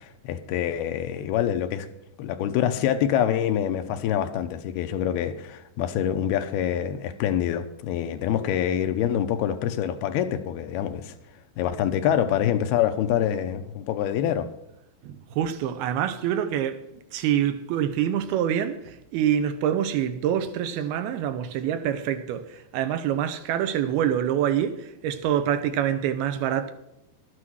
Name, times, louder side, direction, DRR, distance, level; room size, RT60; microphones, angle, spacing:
voice 1, 0.0-1.9 2.2-11.1 11.6-14.5, left 10 dB, 80° left, 2.6 m, -26 dB
voice 2, 15.0-16.8 17.1-26.7, right 10 dB, 80° right, 2.7 m, -26 dB
12.5 x 9.8 x 6.2 m
omnidirectional pair, 4.7 m